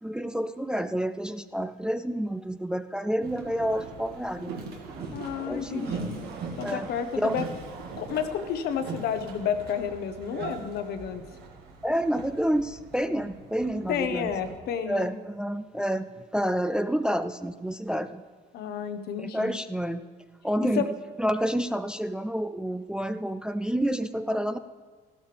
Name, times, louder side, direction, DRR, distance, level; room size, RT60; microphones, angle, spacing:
voice 1, 0.0-4.6 5.4-6.0 6.6-6.9 7.2-7.4 11.8-14.3 14.9-18.2 19.2-20.0 20.4-20.8 21.2-24.6, equal, 5° right, 11 dB, 0.3 m, -29 dB
Boat Water vehicle, 3.2-14.6, right 4 dB, 75° right, 1.8 m, -40 dB
voice 2, 5.1-6.2 6.6-7.4 8.0-11.2 13.9-15.1 18.5-19.6 20.8-20.9, left 8 dB, 70° left, 9 dB, 1.0 m, -31 dB
14.5 x 12.5 x 3.4 m, 1.5 s
cardioid pair, 110°, 17 cm